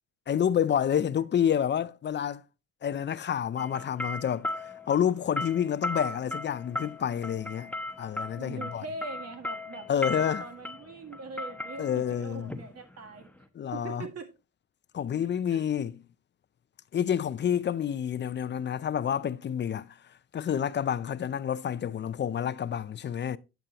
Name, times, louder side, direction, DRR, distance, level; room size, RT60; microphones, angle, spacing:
voice 1, 0.3-2.4 2.8-7.7 8.0-8.8 9.9-10.4 11.8-12.6 13.5-14.1 14.9-15.9 16.9-19.9 20.3-23.4, left 9 dB, 40° left, 0.5 m, -29 dB
sound 1, 3.6-13.4, left 1 dB, 5° left, 0.9 m, -37 dB
voice 2, 8.4-13.3 13.7-14.3 15.5-15.6, right 3 dB, 55° right, 1.8 m, -42 dB
9.0 x 7.8 x 2.8 m
cardioid pair, 90°, 30 cm